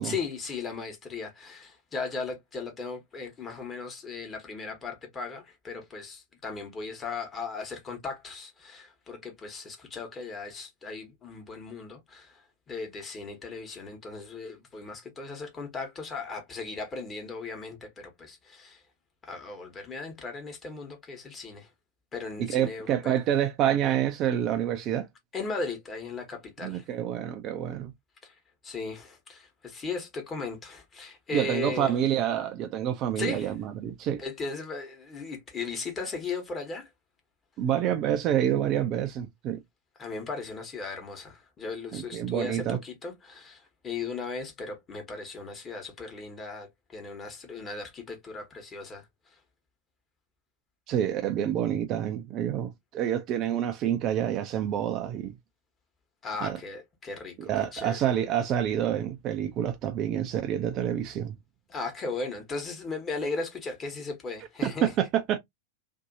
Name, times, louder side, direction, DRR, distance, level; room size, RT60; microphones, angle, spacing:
voice 1, 0.0-18.8 19.2-21.7 22.1-23.2 25.3-26.8 28.2-28.3 28.6-32.0 33.2-33.5 34.2-36.9 40.0-49.0 56.2-58.0 61.7-64.9, left 4 dB, 20° left, 1.1 m, -37 dB
voice 2, 22.5-25.1 26.6-27.9 31.3-34.2 37.6-39.6 41.9-42.8 50.9-55.3 56.4-56.6 57.4-61.3 64.6-65.4, right 10 dB, 35° right, 0.4 m, -28 dB
2.7 x 2.6 x 2.5 m
figure-of-eight pair, 90°, 0 cm